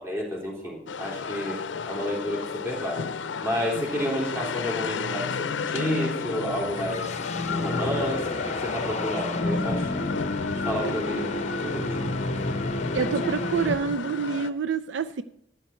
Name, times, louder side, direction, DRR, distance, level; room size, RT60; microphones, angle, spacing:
voice 1, 0.0-1.6 1.9-3.1 3.4-7.2 7.5-10.2 10.7-11.3 11.6-12.2, equal, 15° right, -2 dB, 3.7 m, -31 dB
sound 1, 0.9-14.5, left 5 dB, 90° left, 0.5 m, -33 dB
sound 2, 6.3-14.1, left 2 dB, 40° left, 0.8 m, -30 dB
voice 2, 12.9-15.2, right 6 dB, 75° right, 12 dB, 0.4 m, -27 dB
13.0 x 8.9 x 4.4 m, 0.72 s
head